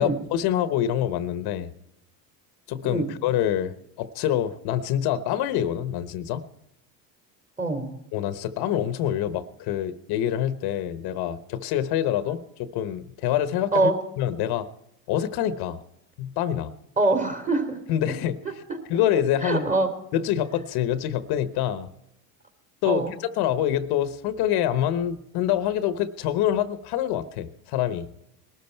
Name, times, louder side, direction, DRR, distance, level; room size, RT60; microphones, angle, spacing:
voice 1, 0.0-1.7 2.7-6.4 8.1-14.7 15.1-15.8 16.2-16.7 17.9-18.4 18.9-19.7 20.1-21.9 22.8-28.1, left 11 dB, 65° left, 12 dB, 1.1 m, -26 dB
voice 2, 7.6-7.9 13.7-14.0 17.0-17.8 18.7-18.8 19.4-19.9 22.8-23.1, right 2 dB, 20° right, 5 dB, 2.9 m, -23 dB
20.5 x 13.0 x 4.5 m, 0.81 s
supercardioid pair, 110°, 42 cm